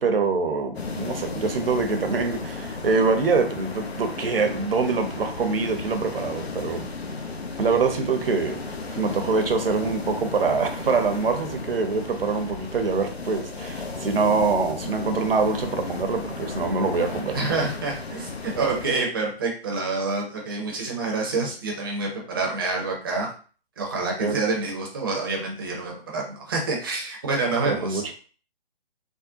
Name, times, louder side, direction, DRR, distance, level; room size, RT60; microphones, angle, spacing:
voice 1, 0.0-6.9 7.6-17.4 24.2-24.4 27.7-28.1, right 4 dB, 65° right, 6 dB, 0.7 m, -24 dB
sound 1, 0.7-18.9, left 3 dB, 85° left, 0.6 m, -34 dB
voice 2, 17.3-23.3 23.8-28.0, right 3 dB, 25° right, 0 dB, 0.5 m, -27 dB
3.6 x 2.1 x 2.6 m, 0.40 s
figure-of-eight pair, 135°, 30 cm